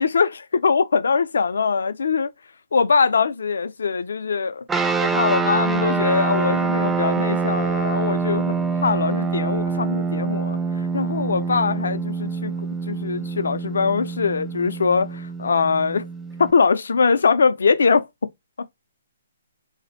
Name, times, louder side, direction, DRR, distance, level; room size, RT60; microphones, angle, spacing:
voice 1, 0.0-2.3 2.7-4.7 5.0-10.6 10.9-12.5 12.9-16.1 16.4-18.1 18.6-18.7, left 5 dB, 80° left, 0.4 m, -22 dB
sound 1, 4.7-16.5, right 4 dB, 10° right, 0.3 m, -25 dB
2.4 x 2.0 x 2.7 m
hypercardioid pair, 160°, 0 cm